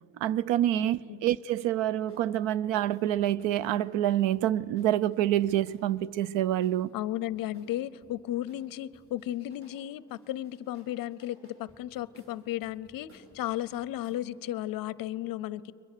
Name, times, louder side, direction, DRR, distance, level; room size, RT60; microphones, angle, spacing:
voice 1, 0.2-6.9, right 12 dB, 85° right, 0.6 m, -27 dB
voice 2, 0.7-1.2 6.9-15.7, left 13 dB, 50° left, 0.6 m, -34 dB
sound 1, 2.1-2.3 2.7-6.0 6.6-8.1 8.5-9.8 10.1-14.2, equal, 30° right, 5.3 m, -60 dB
30.0 x 22.5 x 6.6 m
cardioid pair, 175°, 43 cm